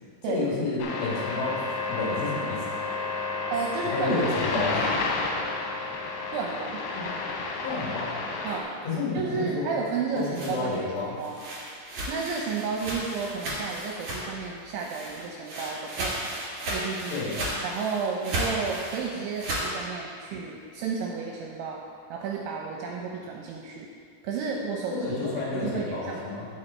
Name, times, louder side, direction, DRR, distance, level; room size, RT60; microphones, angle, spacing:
voice 1, 0.2-1.6 1.9-2.7 3.8-4.9 6.9-7.0 7.6-8.1 8.8-9.8 10.1-11.2 17.1-17.4 24.9-26.5, left 3 dB, 70° left, -5 dB, 4.4 m, -30 dB
sound 1, 0.8-8.6, left 3 dB, 85° left, 3.9 m, -31 dB
voice 2, 3.5-4.7 6.3-6.8 8.4-8.8 9.1-11.3 12.1-16.3 16.7-17.2 17.6-21.8 22.1-23.9 24.2-24.9 25.5-26.3, right 5 dB, 80° right, -1 dB, 2.8 m, -32 dB
sound 2, 9.9-14.5 14.8-19.7, right 1 dB, 45° right, 2.2 m, -34 dB
15.5 x 5.3 x 4.3 m, 2.2 s
omnidirectional pair, 6.0 m